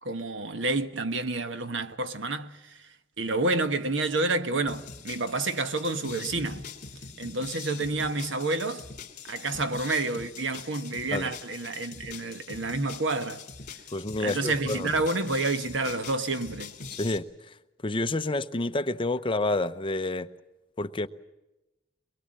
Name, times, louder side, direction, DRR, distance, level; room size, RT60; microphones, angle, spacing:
voice 1, 0.0-2.9 3.2-6.7 7.2-8.9 9.3-13.5 14.2-16.7, right 2 dB, 75° right, 1.3 m, -29 dB
sound 1, 4.7-17.2, left 5 dB, 45° left, 3.1 m, -43 dB
voice 2, 13.9-14.9 17.0-17.2 17.8-20.3 20.8-21.1, left 2 dB, 25° left, 0.8 m, -28 dB
23.5 x 22.0 x 7.6 m
head